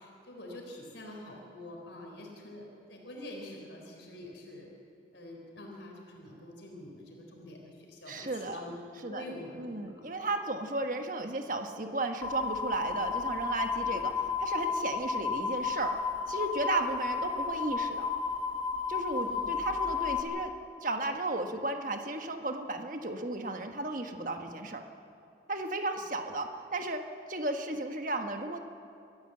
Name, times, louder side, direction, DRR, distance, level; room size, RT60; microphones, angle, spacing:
voice 1, 0.0-4.7 5.1-8.7 9.1-9.9 10.2-10.4 13.9-14.0 19.1-19.4, left 1 dB, 75° left, 0 dB, 3.8 m, -46 dB
voice 2, 8.1-8.6 9.0-9.2 9.6-14.1 14.4-15.9 16.3-18.1 18.9-20.5 20.8-24.8 25.5-27.0 27.3-28.6, right 2 dB, 45° right, 5 dB, 1.4 m, -34 dB
sound 1, 12.2-20.2, left 5 dB, 25° left, 1.8 m, -32 dB
24.5 x 14.0 x 7.9 m, 2.6 s
head